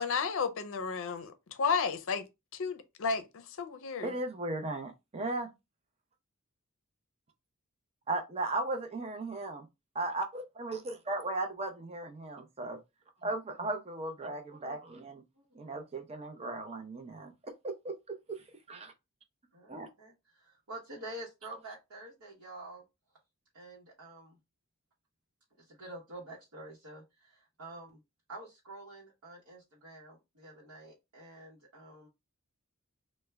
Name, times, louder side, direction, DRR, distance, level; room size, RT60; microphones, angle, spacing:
voice 1, 0.0-2.2 2.5-4.1, left 5 dB, 60° left, 0.5 m, -32 dB
voice 2, 4.0-5.5 8.1-9.7 9.9-12.8 13.2-15.2 15.5-17.3 17.6-18.4 18.7-18.9 19.7-19.9, right 2 dB, 30° right, 0.6 m, -36 dB
voice 3, 15.3-15.8 19.5-22.8 23.5-24.4 25.6-28.0 28.3-32.1, right 1 dB, 65° right, 0.9 m, -48 dB
3.3 x 2.1 x 3.3 m
head